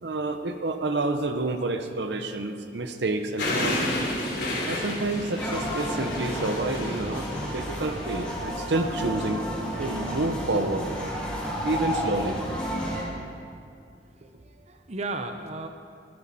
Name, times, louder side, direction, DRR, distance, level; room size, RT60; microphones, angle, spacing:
voice 1, 0.0-3.9 4.7-9.4 9.8-10.9 11.6-12.4, right 2 dB, 70° right, 7 dB, 0.8 m, -29 dB
sound 1, 3.4-8.4, left 1 dB, 70° left, 3.1 m, -31 dB
sound 2, 5.4-13.0, equal, 5° left, 2.7 m, -31 dB
voice 2, 14.0-15.7, right 2 dB, 40° right, 6 dB, 0.7 m, -35 dB
20.0 x 11.5 x 4.2 m, 2.4 s
head